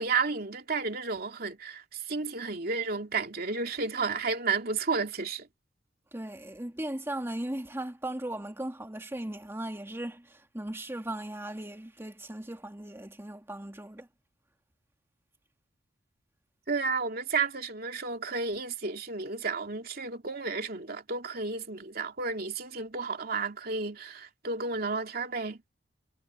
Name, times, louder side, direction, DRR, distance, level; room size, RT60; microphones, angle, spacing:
voice 1, 0.0-5.5 16.7-25.6, right 4 dB, 55° right, 2.8 m, -32 dB
voice 2, 6.1-14.1, right 1 dB, 15° right, 1.9 m, -37 dB
head